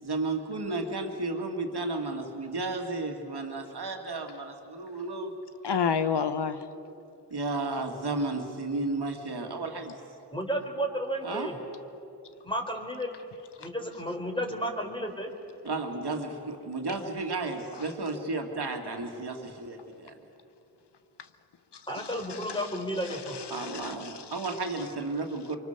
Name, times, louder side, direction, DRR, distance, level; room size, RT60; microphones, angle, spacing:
voice 1, 0.0-5.3 7.3-10.0 11.2-11.5 15.6-20.2 23.5-25.6, right 3 dB, 70° right, 3 dB, 2.4 m, -33 dB
voice 2, 5.6-6.6 16.9-17.0 21.7-21.8 22.3-22.6 23.1-24.2, left 6 dB, 80° left, 11 dB, 1.1 m, -30 dB
voice 3, 10.3-11.6 12.4-13.1 13.6-15.3 21.9-23.4, equal, 10° left, 2 dB, 4.1 m, -32 dB
24.5 x 24.5 x 6.9 m, 2.7 s
cardioid pair, 45°, 40 cm